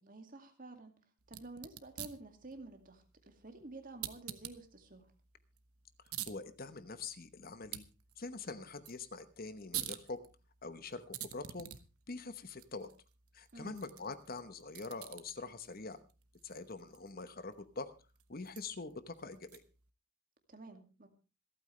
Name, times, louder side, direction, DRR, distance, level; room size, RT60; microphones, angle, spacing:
voice 1, 0.0-1.0 1.3-5.1 13.5-13.8 20.5-21.1, right 2 dB, 40° right, 6 dB, 2.2 m, -51 dB
sound 1, 1.2-19.9, right 12 dB, 85° right, 1.1 m, -49 dB
voice 2, 6.3-7.8 8.2-10.2 10.6-11.7 12.1-12.9 13.3-16.0 16.4-17.9 18.3-19.6, left 3 dB, 40° left, 12 dB, 1.0 m, -44 dB
26.5 x 9.0 x 3.2 m, 0.31 s
head